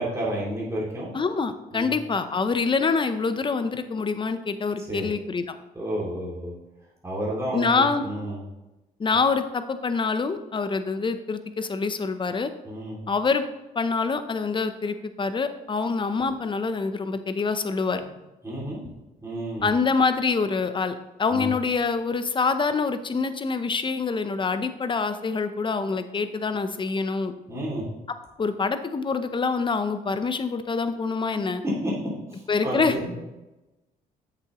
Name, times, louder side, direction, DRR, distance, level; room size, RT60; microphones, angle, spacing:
voice 1, 0.0-1.1 1.7-2.0 4.9-5.1 5.7-6.5 7.0-8.4 12.6-13.0 18.4-18.8 19.2-19.7 21.3-21.5 27.5-27.8 31.8-31.9 32.6-33.1, right 1 dB, 15° right, -6 dB, 2.7 m, -31 dB
voice 2, 1.1-5.5 7.5-8.1 9.0-12.5 13.1-13.4 13.7-18.0 19.6-27.3 28.4-31.6 32.5-32.9, left 4 dB, 30° left, 10 dB, 0.7 m, -25 dB
7.9 x 6.9 x 3.1 m, 1.0 s
supercardioid pair, 75°, 17 cm